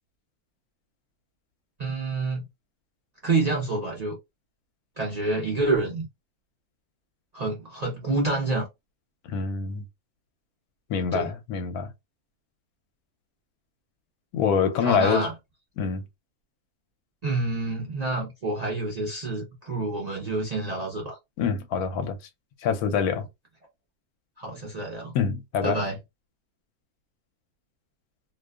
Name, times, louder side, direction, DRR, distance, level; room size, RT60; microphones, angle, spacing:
voice 1, 1.8-2.4 3.2-4.2 5.0-6.1 7.3-8.7 11.1-11.3 14.8-15.3 17.2-21.2 24.4-25.1 25.6-26.0, right 2 dB, 40° right, 0.6 m, -28 dB
voice 2, 9.3-9.8 10.9-11.9 14.3-15.3 15.8-16.0 21.4-22.2 22.6-23.2 25.1-25.8, left 6 dB, 85° left, 1.1 m, -25 dB
2.5 x 2.2 x 2.3 m
omnidirectional pair, 1.5 m